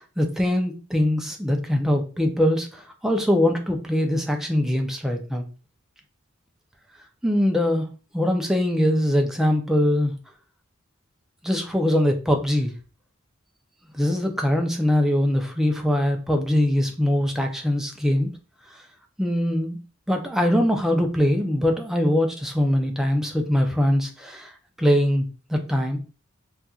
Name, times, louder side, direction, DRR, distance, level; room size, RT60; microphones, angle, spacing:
voice 1, 0.0-5.4 7.2-10.1 11.4-12.7 13.9-18.3 19.2-19.8 20.1-24.5 24.8-26.0, left 1 dB, ahead, 3 dB, 0.4 m, -22 dB
4.1 x 2.4 x 2.3 m, 0.35 s
head